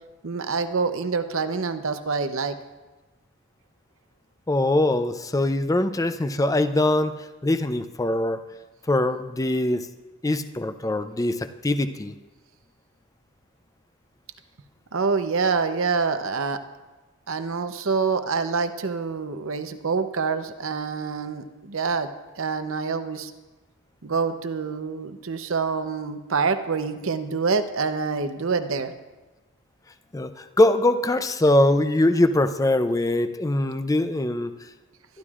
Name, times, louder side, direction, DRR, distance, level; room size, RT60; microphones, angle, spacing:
voice 1, 0.2-2.5 14.9-16.6 17.3-22.1 22.4-23.3 24.0-28.9, right 5 dB, 65° right, 9 dB, 0.8 m, -26 dB
voice 2, 4.5-7.1 7.4-8.4 8.9-9.9 10.2-12.1 30.1-34.5, left 1 dB, 15° left, 10 dB, 0.5 m, -22 dB
23.0 x 11.5 x 2.5 m, 1.2 s
head